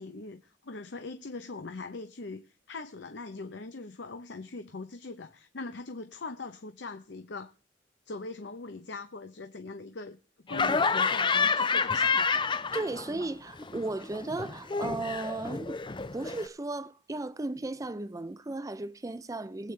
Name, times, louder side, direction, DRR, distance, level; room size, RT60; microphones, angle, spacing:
voice 1, 0.0-7.5 8.1-10.2 10.5-12.3, left 3 dB, 70° left, 0.8 m, -41 dB
Laughter, 10.5-13.3 13.6-16.5, left 5 dB, 25° left, 0.6 m, -29 dB
voice 2, 12.7-15.8 16.1-19.7, right 2 dB, 20° right, 0.5 m, -35 dB
21.5 x 8.4 x 3.3 m
head